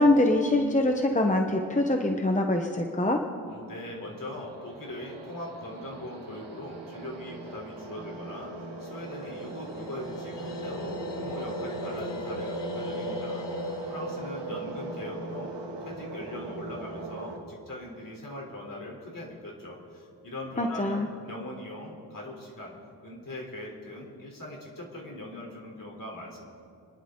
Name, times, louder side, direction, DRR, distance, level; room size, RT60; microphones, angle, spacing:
voice 1, 0.0-3.2 20.6-21.1, left 1 dB, 20° left, 3 dB, 1.1 m, -24 dB
voice 2, 3.5-15.5 15.8-22.7 23.0-26.4, left 1 dB, 50° left, -1 dB, 3.9 m, -41 dB
sound 1, 3.9-17.4, right 2 dB, 90° right, 2.1 m, -39 dB
sound 2, 8.9-16.0, left 3 dB, 90° left, 1.2 m, -41 dB
30.0 x 11.0 x 3.9 m, 2.4 s
wide cardioid pair, 85°, 41 cm